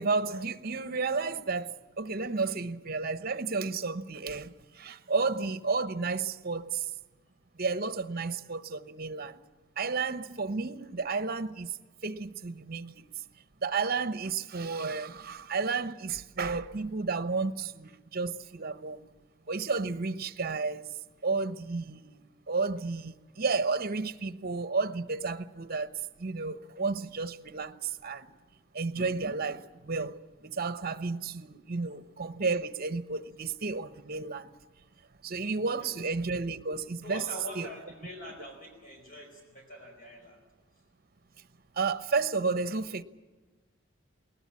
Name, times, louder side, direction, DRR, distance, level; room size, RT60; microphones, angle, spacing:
voice 1, 0.0-6.9 7.6-9.4 9.8-11.7 12.0-13.0 13.6-19.1 19.5-20.9 21.2-22.2 22.5-25.9 26.2-28.3 28.7-30.2 30.4-34.5 35.2-37.2 37.6-37.7 41.8-43.0, right 4 dB, 50° right, 1.0 m, -32 dB
voice 2, 37.0-40.4, equal, 45° left, 4.6 m, -44 dB
20.5 x 19.5 x 8.5 m
head